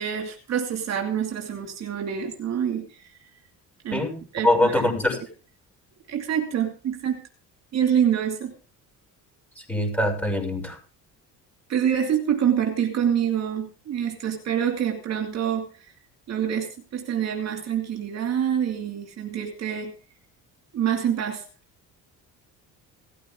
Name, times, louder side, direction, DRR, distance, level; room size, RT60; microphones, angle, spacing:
voice 1, 0.0-3.0 3.8-4.9 6.1-7.2 7.7-8.5 11.7-15.9 16.3-19.9 20.7-21.4, right 9 dB, 50° right, 3 dB, 2.6 m, -26 dB
voice 2, 4.4-5.2 9.7-10.8, left 1 dB, 5° left, 4 dB, 6.6 m, -23 dB
17.0 x 14.0 x 3.9 m, 0.38 s
cardioid pair, 140°, 34 cm